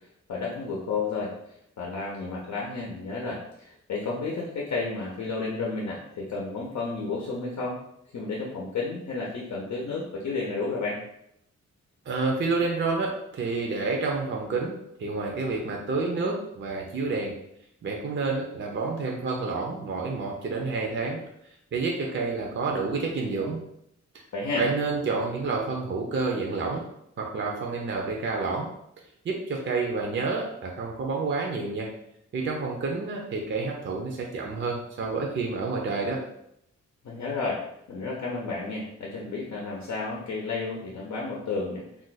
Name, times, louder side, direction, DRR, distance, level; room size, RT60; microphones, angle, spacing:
voice 1, 0.3-1.3 1.8-7.8 8.1-11.0 24.3-24.6 37.0-37.6 37.9-42.0, left 3 dB, 75° left, -3 dB, 0.7 m, -32 dB
voice 2, 12.1-17.3 17.8-21.2 21.7-23.6 24.5-26.8 27.2-28.7 29.2-31.9 32.3-36.2, right 3 dB, 40° right, 0 dB, 0.5 m, -29 dB
2.5 x 2.2 x 3.9 m, 0.76 s
wide cardioid pair, 110°, 29 cm